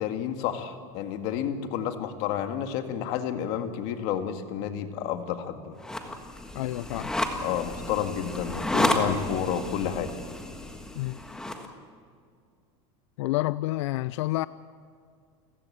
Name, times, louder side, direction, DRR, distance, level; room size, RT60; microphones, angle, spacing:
voice 1, 0.0-5.8 7.4-10.1, left 9 dB, 45° left, 2.0 m, -30 dB
sound 1, 5.8-11.7, left 1 dB, 5° left, 1.5 m, -31 dB
voice 2, 6.5-7.1 11.0-11.2 13.2-14.5, left 18 dB, 90° left, 0.5 m, -29 dB
30.0 x 15.5 x 8.6 m
supercardioid pair, 175°, 15 cm